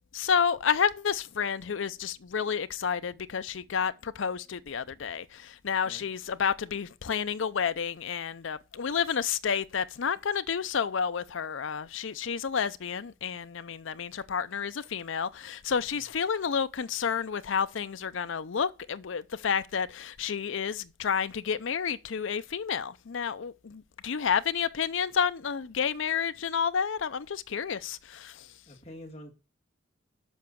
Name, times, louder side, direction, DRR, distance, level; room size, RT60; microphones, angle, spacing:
voice 1, 0.1-28.5, left 7 dB, 75° left, 0.5 m, -30 dB
voice 2, 28.7-29.3, equal, 30° left, 2.3 m, -46 dB
7.3 x 5.8 x 6.9 m
head